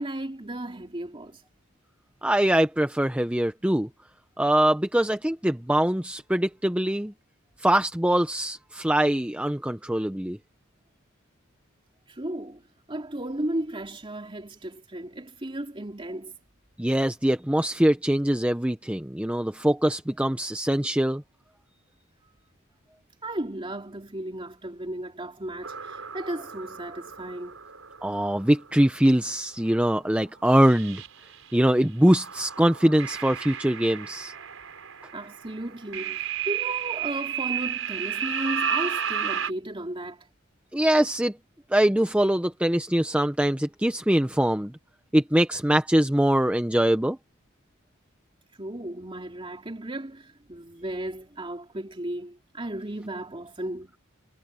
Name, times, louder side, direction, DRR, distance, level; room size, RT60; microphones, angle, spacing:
voice 1, 0.0-1.4 12.1-12.6 12.9-16.3 23.2-27.6 35.1-40.2 48.6-54.0, right 1 dB, 25° right, 2.7 m, -35 dB
voice 2, 2.2-3.9 4.4-7.1 7.6-10.4 16.8-21.2 28.0-31.0 31.5-34.3 40.7-41.4 41.7-44.7 45.1-47.2, right 1 dB, 5° right, 0.8 m, -23 dB
sound 1, 25.6-28.9 29.6-29.9 30.2-31.6 32.1-39.5, right 8 dB, 85° right, 4.7 m, -33 dB
head